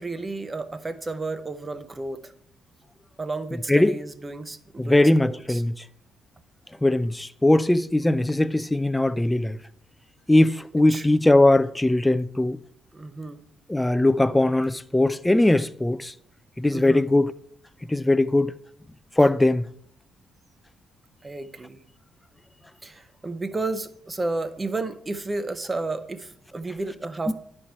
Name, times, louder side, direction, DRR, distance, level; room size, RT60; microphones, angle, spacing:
voice 1, 0.0-2.3 3.2-5.6 10.9-11.1 12.9-13.4 16.7-17.1 21.2-21.8 22.8-27.3, right 3 dB, 25° right, 0.7 m, -32 dB
voice 2, 4.8-5.7 6.8-9.6 10.3-12.6 13.7-16.1 16.6-17.3 17.9-18.5 19.2-19.6 27.3-27.4, left 1 dB, 10° left, 0.3 m, -20 dB
10.0 x 4.4 x 4.5 m
cardioid pair, 90°, 0 cm